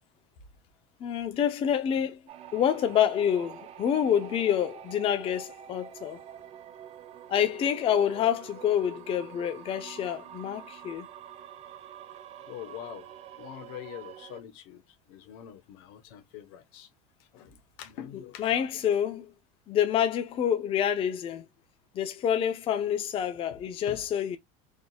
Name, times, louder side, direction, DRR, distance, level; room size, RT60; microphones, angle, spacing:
voice 1, 1.0-2.2 2.5-6.2 7.3-11.1 18.4-19.3 19.7-21.4 21.9-24.4, left 9 dB, 30° left, 0.5 m, -27 dB
sound 1, 2.3-14.4, right 9 dB, 35° right, 0.5 m, -47 dB
voice 2, 12.4-13.1 13.4-16.9 17.2-18.8 23.5-23.6 23.9-24.0, left 11 dB, 70° left, 0.9 m, -44 dB
3.5 x 2.7 x 2.2 m
supercardioid pair, 125°, 18 cm